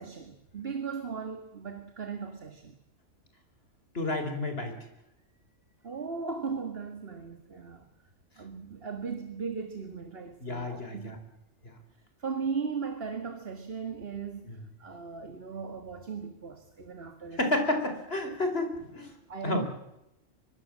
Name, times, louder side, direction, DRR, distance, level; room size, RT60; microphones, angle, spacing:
voice 1, 0.0-2.8 5.8-7.9 8.4-11.2 12.2-17.4 19.3-19.6, right 5 dB, 50° right, 2.2 m, -37 dB
voice 2, 3.9-4.7 10.4-11.2 11.6-11.8 14.4-14.5 17.3-19.1 19.4-19.6, left 2 dB, 55° left, 4.7 m, -30 dB
24.0 x 22.0 x 7.5 m
omnidirectional pair, 1.3 m